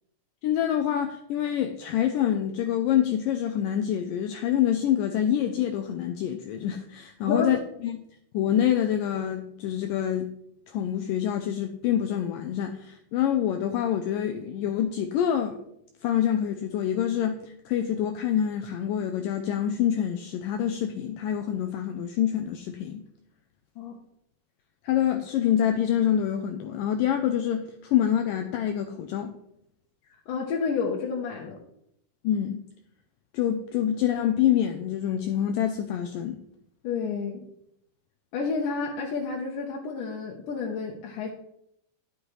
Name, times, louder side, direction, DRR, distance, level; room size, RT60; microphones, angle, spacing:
voice 1, 0.4-7.6 7.8-8.0 8.3-10.3 10.7-15.6 16.0-17.4 17.7-23.0 24.8-29.4 32.2-32.6 33.3-36.4, left 10 dB, 90° left, 6 dB, 1.9 m, -26 dB
voice 2, 30.3-31.6 36.8-37.5 38.3-41.3, left 5 dB, 75° left, -1 dB, 2.2 m, -30 dB
10.5 x 9.5 x 3.2 m, 0.76 s
omnidirectional pair, 4.5 m